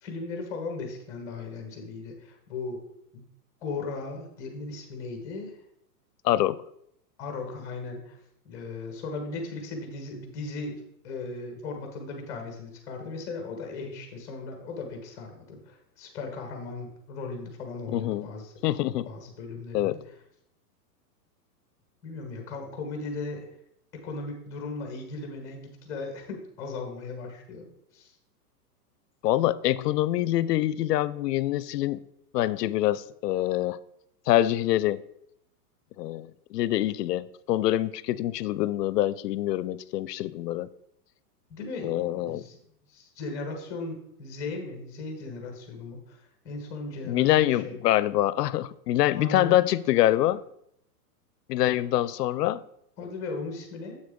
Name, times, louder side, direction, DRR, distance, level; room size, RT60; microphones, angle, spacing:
voice 1, 0.0-2.8 3.1-3.2 3.6-5.6 7.2-8.2 8.4-18.5 19.0-20.0 22.0-23.5 24.0-27.6 27.9-28.2 41.5-42.6 42.9-47.8 49.1-49.6 51.8-51.9 53.0-54.0, left 3 dB, 5° left, 3 dB, 0.6 m, -37 dB
voice 2, 6.2-6.6 17.9-18.2 18.6-19.1 19.7-20.0 29.2-32.0 32.3-33.8 34.3-35.0 36.0-40.7 41.8-42.4 47.0-50.4 51.5-52.6, left 14 dB, 80° left, 18 dB, 0.5 m, -25 dB
7.4 x 6.4 x 3.7 m, 0.75 s
supercardioid pair, 170°, 48 cm